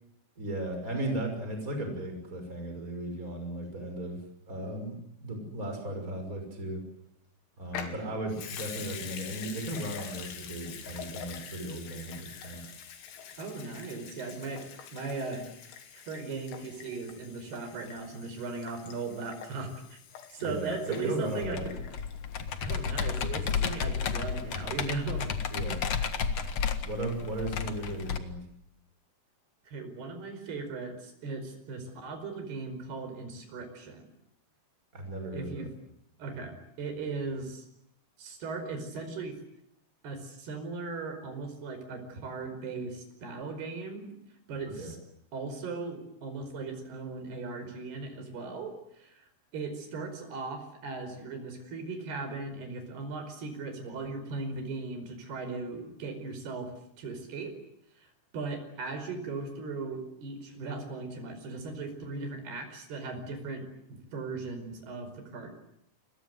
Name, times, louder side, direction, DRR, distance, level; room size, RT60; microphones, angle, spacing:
voice 1, 0.4-6.8 7.6-12.6 20.4-21.7 25.5-25.8 26.8-28.4 34.9-35.7 44.6-44.9, right 1 dB, 15° right, 4 dB, 6.2 m, -36 dB
Water tap faucet / Sink (filling or washing) / Liquid, 7.7-22.3 22.6-22.7, left 7 dB, 85° left, 5.2 m, -45 dB
voice 2, 13.4-15.5 15.9-20.0 20.3-21.8 22.6-25.3 29.7-34.0 35.3-35.7 36.2-37.6 38.2-39.4 40.0-44.1 44.5-45.0 45.3-49.2 49.5-56.7 57.0-57.6 58.0-63.6 63.9-65.5, right 3 dB, 55° right, 7 dB, 6.7 m, -38 dB
Computer keyboard, 21.4-28.2, left 6 dB, 70° left, 1.5 m, -32 dB
29.0 x 22.5 x 8.0 m, 0.76 s
omnidirectional pair, 5.5 m